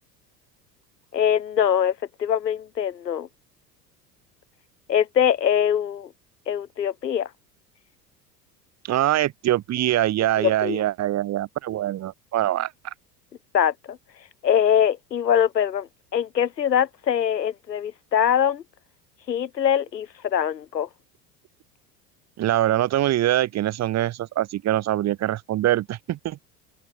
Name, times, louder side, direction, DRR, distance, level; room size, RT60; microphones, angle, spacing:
voice 1, 1.1-3.3 4.9-6.1 6.5-7.3 10.4-10.8 13.5-14.0 14.4-18.6 19.3-20.9, left 9 dB, 85° left, 1.1 m, -23 dB
voice 2, 8.9-12.7 22.4-26.4, right 13 dB, 35° right, 1.1 m, -23 dB
open air
figure-of-eight pair, 75°, 48 cm